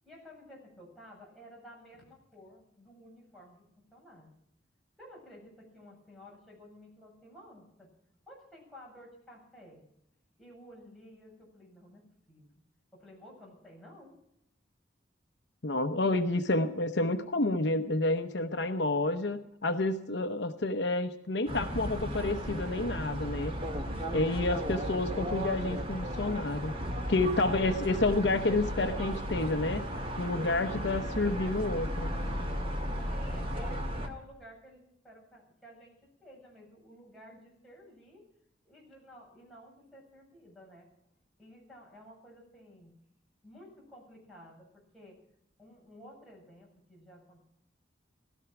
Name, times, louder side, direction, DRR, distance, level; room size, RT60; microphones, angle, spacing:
voice 1, 0.0-3.6 3.9-4.3 5.0-7.9 8.3-9.8 10.4-12.5 12.9-14.2 30.8-31.5 33.1-35.9 36.2-38.2 38.6-40.9 41.4-43.0 43.4-45.2 45.6-47.4, equal, ahead, -4 dB, 7.6 m, -53 dB
voice 2, 15.6-23.5 24.1-26.7 27.1-29.9 30.2-32.1, left 2 dB, 65° left, 8 dB, 0.9 m, -29 dB
sound 1, 21.5-34.1, equal, 30° right, 2.1 m, -35 dB
17.0 x 13.0 x 6.0 m, 0.75 s
head